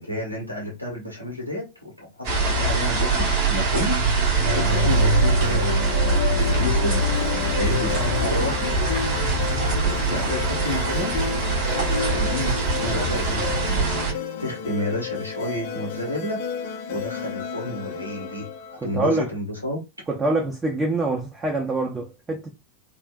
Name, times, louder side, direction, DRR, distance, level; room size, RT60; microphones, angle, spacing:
voice 1, 0.0-4.0 4.5-7.2 7.5-8.7 10.1-12.6 12.8-19.8, left 1 dB, 85° right, 1.5 m, -31 dB
sound 1, 2.2-14.1, right 3 dB, 50° right, 1.6 m, -23 dB
sound 2, 4.4-19.0, left 8 dB, 50° left, 0.5 m, -32 dB
voice 2, 18.9-19.3 20.1-22.5, right 2 dB, 15° right, 0.7 m, -25 dB
3.5 x 2.5 x 2.4 m
figure-of-eight pair, 90°, 0 cm